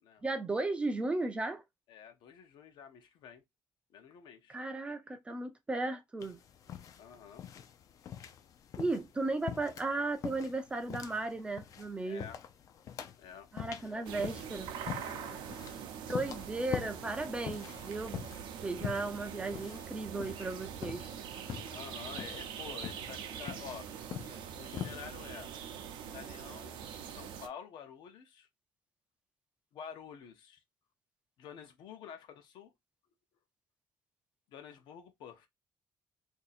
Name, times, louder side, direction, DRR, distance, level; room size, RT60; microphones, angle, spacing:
voice 1, 0.2-1.6 4.5-6.4 8.8-12.3 13.5-14.7 16.1-18.3 18.6-21.1, right 2 dB, 15° right, 0.4 m, -35 dB
voice 2, 1.9-3.4 3.9-4.6 7.0-7.4 12.0-12.4 13.2-13.5 15.1-15.5 21.7-23.9 24.5-25.5 26.1-28.5 29.7-30.6 31.4-32.7 34.5-35.5, left 8 dB, 70° left, 0.8 m, -49 dB
sound 1, 6.2-25.1, left 9 dB, 45° left, 0.4 m, -45 dB
sound 2, 14.0-27.5, right 8 dB, 80° right, 0.6 m, -43 dB
2.7 x 2.7 x 4.1 m
cardioid pair, 170°, 8 cm